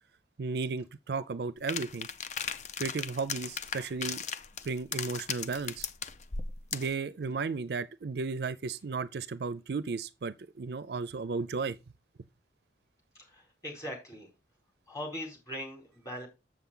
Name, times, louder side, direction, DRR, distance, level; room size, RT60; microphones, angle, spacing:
voice 1, 0.4-2.1 2.8-4.2 4.6-5.9 6.7-11.8, right 4 dB, 60° right, 0.4 m, -34 dB
sound 1, 1.7-7.0, left 6 dB, 40° left, 0.5 m, -37 dB
voice 2, 13.1-14.3 14.9-16.3, equal, 20° left, 4.5 m, -40 dB
7.7 x 7.0 x 3.8 m
head